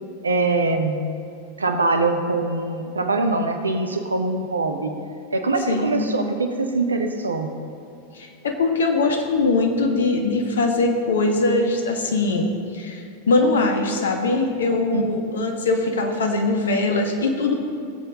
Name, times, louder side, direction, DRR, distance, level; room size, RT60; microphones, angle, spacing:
voice 1, 0.2-1.0 1.6-4.9 5.3-7.5 14.9-15.0, right 3 dB, 75° right, 6 dB, 1.0 m, -23 dB
voice 2, 5.7-6.0 8.1-17.6, left 3 dB, 65° left, 4 dB, 1.5 m, -21 dB
18.5 x 8.0 x 3.9 m, 2.5 s
figure-of-eight pair, 90°, 0 cm